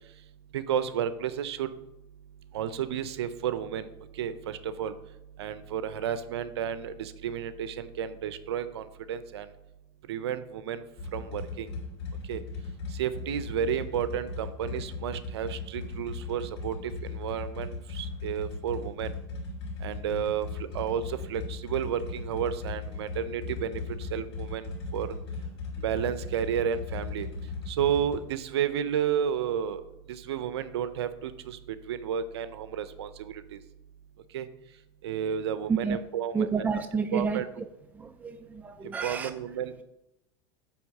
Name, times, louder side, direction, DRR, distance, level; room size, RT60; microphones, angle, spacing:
voice 1, 0.5-1.7 2.5-3.9 4.2-4.9 5.4-9.5 10.1-10.8 11.1-11.7 12.3-12.4 13.0-19.1 19.8-20.5 20.7-23.8 24.1-25.1 25.8-27.3 27.7-29.8 30.1-33.6 34.3-34.5 35.0-36.7 37.1-37.5 38.8-39.8, right 9 dB, 85° right, 13 dB, 0.6 m, -32 dB
sound 1, 11.0-28.2, left 3 dB, 85° left, 2.7 m, -38 dB
voice 2, 36.3-37.4 37.9-39.3, right 5 dB, 10° right, 8 dB, 0.4 m, -29 dB
10.0 x 3.6 x 6.6 m, 0.89 s
supercardioid pair, 110°, 13 cm